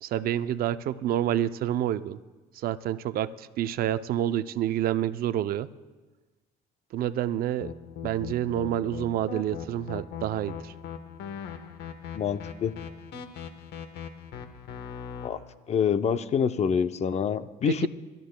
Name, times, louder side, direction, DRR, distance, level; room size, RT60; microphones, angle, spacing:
voice 1, 0.0-2.2 2.5-5.7 6.9-7.7 8.0-10.7 17.7-17.9, right 11 dB, 60° right, 13 dB, 0.5 m, -28 dB
sound 1, 7.6-15.3, left 7 dB, 85° left, 1.1 m, -39 dB
voice 2, 12.1-12.7 15.2-15.4 15.7-17.9, left 7 dB, 40° left, 11 dB, 0.6 m, -26 dB
23.5 x 13.5 x 2.2 m, 1.3 s
cardioid pair, 110°, 17 cm